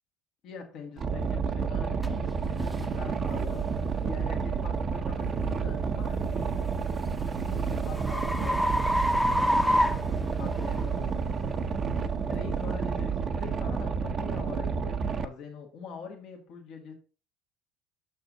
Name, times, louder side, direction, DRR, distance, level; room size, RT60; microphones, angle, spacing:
voice 1, 0.4-6.8 7.4-9.7 10.3-11.4 12.3-16.9, left 5 dB, 60° left, 1.8 m, -43 dB
Boat Water vehicle, 1.0-15.2, right 5 dB, 40° right, 0.8 m, -30 dB
sound 1, 2.0-2.1 2.7-2.9 3.5-3.7 6.3-10.8, equal, ahead, 0.9 m, -28 dB
6.6 x 6.1 x 4.0 m
supercardioid pair, 85°, 0 cm